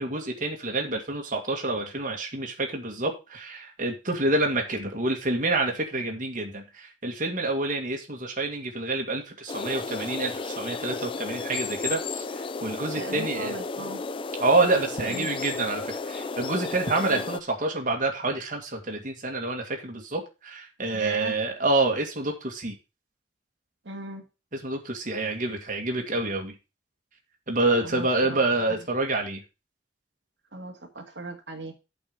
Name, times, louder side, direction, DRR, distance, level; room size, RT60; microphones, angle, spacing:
voice 1, 0.0-13.5 14.4-22.8 24.5-26.5 27.5-29.4, right 2 dB, 45° right, 2 dB, 2.0 m, -27 dB
sound 1, 9.5-17.4, left 4 dB, 30° left, 0.4 m, -33 dB
voice 2, 12.9-14.0 15.0-15.3 17.0-17.2 20.9-21.3 23.8-24.3 27.8-28.4 30.5-31.7, right 2 dB, 70° right, 3 dB, 1.9 m, -38 dB
8.3 x 5.4 x 6.5 m, 0.29 s
head